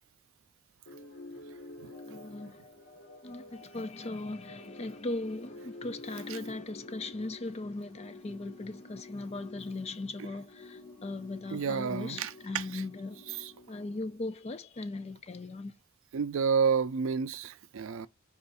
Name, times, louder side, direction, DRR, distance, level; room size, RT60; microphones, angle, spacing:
sound 1, 0.9-14.6, left 2 dB, 60° left, 1.2 m, -49 dB
voice 1, 2.1-2.6 3.2-13.2 13.7-15.7, left 2 dB, 30° left, 0.5 m, -38 dB
voice 2, 11.5-12.8 13.3-13.5 16.1-18.1, right 6 dB, 65° right, 0.4 m, -30 dB
5.4 x 2.5 x 3.9 m
head